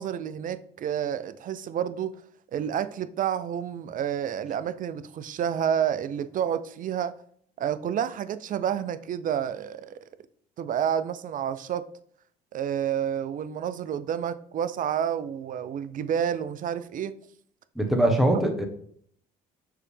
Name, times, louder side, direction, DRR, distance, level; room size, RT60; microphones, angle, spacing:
voice 1, 0.0-2.2 2.5-7.1 7.6-10.0 10.6-11.9 12.5-17.2 18.3-18.4, right 9 dB, 45° right, 0.4 m, -29 dB
voice 2, 17.7-18.7, right 1 dB, ahead, 1.0 m, -22 dB
4.8 x 3.2 x 3.4 m
hypercardioid pair, 60°, 20 cm